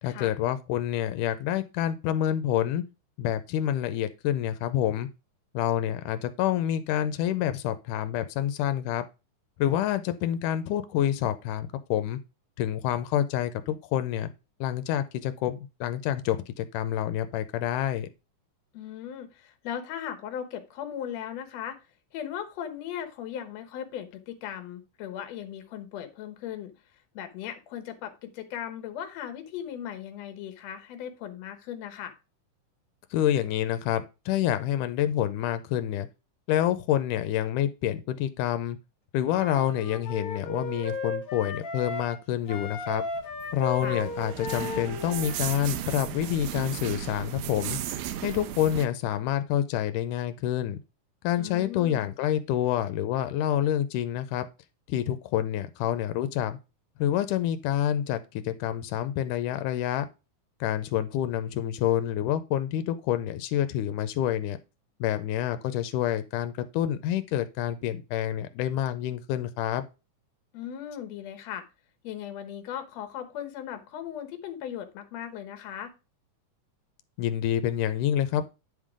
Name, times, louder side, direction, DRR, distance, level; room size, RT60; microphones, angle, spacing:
voice 1, 0.0-2.8 3.2-5.1 5.5-9.0 9.6-12.2 12.6-14.3 14.6-18.1 33.1-36.1 36.5-38.8 39.1-43.0 43.5-50.8 51.2-54.5 54.9-56.6 57.0-60.1 60.6-64.6 65.0-69.9 77.2-78.4, left 11 dB, 90° left, 2.2 m, -28 dB
voice 2, 18.7-21.8 22.1-26.7 27.1-32.1 43.8-44.0 51.4-52.1 70.5-71.7 72.0-75.9, left 9 dB, 65° left, 2.0 m, -38 dB
Wind instrument woodwind instrument, 39.2-42.2 42.5-45.6, left 3 dB, 40° left, 1.3 m, -35 dB
sound 1, 42.9-48.9, right 11 dB, 90° right, 2.3 m, -35 dB
9.7 x 3.7 x 4.8 m
omnidirectional pair, 3.6 m